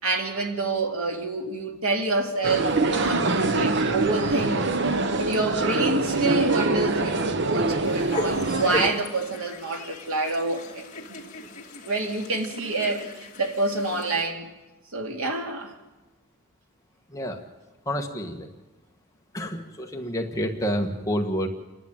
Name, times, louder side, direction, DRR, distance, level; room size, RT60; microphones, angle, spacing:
voice 1, 0.0-4.7 5.2-10.9 11.8-14.5 14.9-15.7, right 2 dB, 90° right, 2.6 m, -27 dB
sound 1, 2.4-8.9, right 3 dB, 55° right, 1.0 m, -24 dB
sound 2, 7.8-14.2, left 2 dB, 35° left, 2.6 m, -37 dB
voice 2, 17.8-18.5 19.3-21.5, equal, 15° left, 1.6 m, -28 dB
28.5 x 11.5 x 8.9 m
head